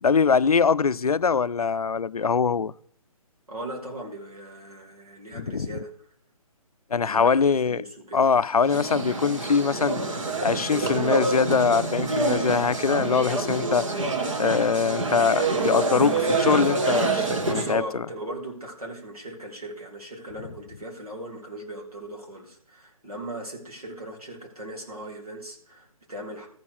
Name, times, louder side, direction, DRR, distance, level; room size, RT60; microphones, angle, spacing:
voice 1, 0.0-2.7 5.4-5.7 6.9-7.8 8.1-10.0 10.4-14.0 14.4-18.0, left 5 dB, 80° left, 0.4 m, -23 dB
voice 2, 3.5-5.9 7.0-8.2 17.4-26.5, right 1 dB, 80° right, 3.5 m, -38 dB
sound 1, 8.6-17.8, right 3 dB, 55° right, 1.7 m, -27 dB
13.5 x 4.6 x 6.6 m
figure-of-eight pair, 135°, 19 cm